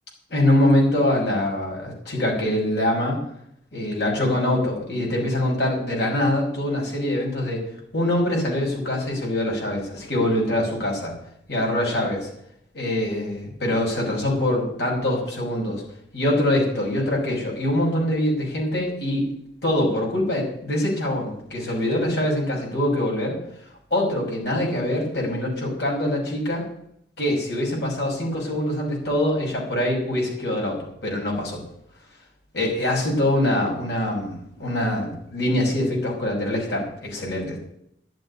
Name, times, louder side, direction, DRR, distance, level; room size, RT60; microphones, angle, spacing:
voice 1, 0.3-3.2 3.7-7.6 7.9-11.1 11.5-12.3 12.7-15.8 16.1-19.3 19.6-23.4 23.9-26.6 27.2-31.6 32.5-37.6, left 1 dB, 70° left, -2 dB, 5.7 m, -24 dB
11.5 x 8.0 x 9.5 m, 0.73 s
head